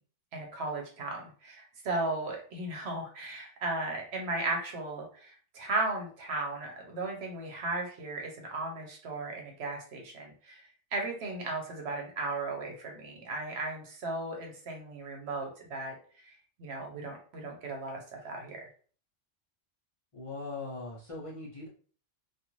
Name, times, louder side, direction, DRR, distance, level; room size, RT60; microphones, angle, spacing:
voice 1, 0.3-15.9 16.2-16.3 16.6-18.6, right 2 dB, 65° right, 1 dB, 1.0 m, -36 dB
voice 2, 20.1-21.7, left 3 dB, 35° left, -6 dB, 0.6 m, -40 dB
2.5 x 2.4 x 3.0 m, 0.43 s
omnidirectional pair, 1.2 m